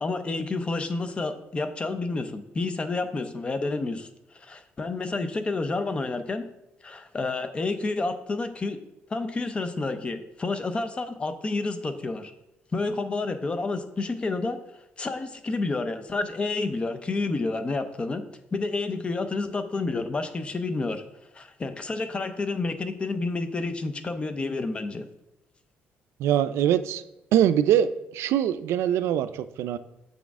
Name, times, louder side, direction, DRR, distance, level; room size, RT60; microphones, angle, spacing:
voice 1, 0.0-6.5 6.8-8.8 9.1-12.3 12.7-14.6 15.0-18.2 18.5-21.0 21.3-25.1, left 3 dB, 25° left, 9 dB, 0.6 m, -29 dB
voice 2, 26.2-27.0 27.3-29.8, right 10 dB, 85° right, 13 dB, 0.4 m, -23 dB
6.9 x 6.2 x 3.6 m, 0.90 s
cardioid pair, 140°, 4 cm